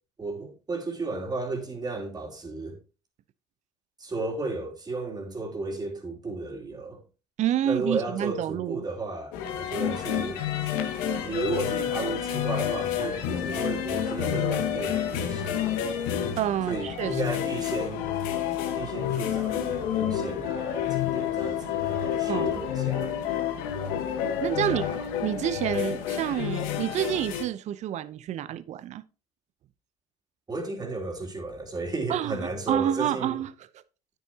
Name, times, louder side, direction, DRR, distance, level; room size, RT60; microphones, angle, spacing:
voice 1, 0.2-2.8 4.0-7.0 7.6-10.4 11.2-15.9 16.7-18.1 18.7-23.1 24.7-25.0 30.5-33.4, right 3 dB, 30° right, 2.9 m, -34 dB
voice 2, 7.4-8.8 16.4-17.2 22.3-22.6 24.4-24.8 25.2-29.0 32.1-33.8, right 11 dB, 55° right, 0.7 m, -28 dB
sound 1, 9.3-27.4, left 9 dB, 75° left, 1.3 m, -29 dB
9.3 x 9.2 x 2.9 m
hypercardioid pair, 70°, 14 cm